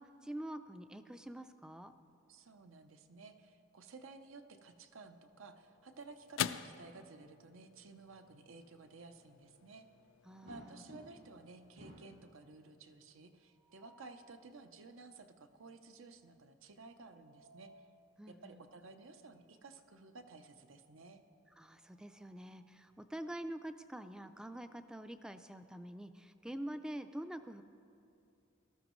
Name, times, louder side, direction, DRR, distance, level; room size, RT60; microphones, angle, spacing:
voice 1, 0.0-1.9 10.3-10.8 18.2-18.6 21.6-27.6, right 1 dB, 5° right, 10 dB, 0.3 m, -46 dB
voice 2, 2.3-9.9 10.4-17.9 18.3-21.2, right 3 dB, 80° right, 8 dB, 0.7 m, -55 dB
sound 1, 5.1-13.6, left 10 dB, 70° left, 0.3 m, -47 dB
sound 2, 10.5-11.4 11.8-12.2 13.5-14.2 16.9-17.9 19.3-19.5 19.9-20.0 21.5-22.8, equal, 60° right, 2.0 m, -59 dB
19.0 x 13.0 x 3.1 m, 2.6 s
head